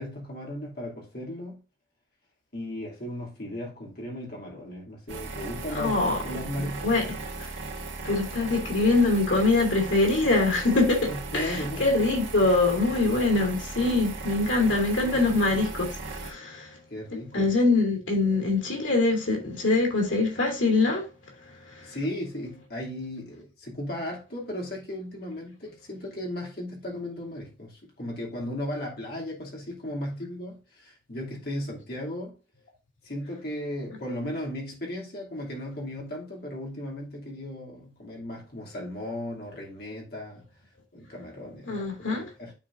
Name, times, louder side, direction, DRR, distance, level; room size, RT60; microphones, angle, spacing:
voice 1, 0.0-1.6 2.5-6.0 6.2-7.0 11.1-11.9 16.9-17.5 21.8-32.3 33.0-40.4 40.9-42.5, left 1 dB, 50° left, 2.6 m, -36 dB
sound 1, 5.1-16.3, right 3 dB, 80° right, 1.6 m, -37 dB
voice 2, 5.7-7.1 7.4-7.5 8.0-16.8 17.3-21.1 21.6-22.0 41.7-42.3, left 3 dB, 90° left, 2.8 m, -24 dB
12.0 x 4.1 x 2.6 m
head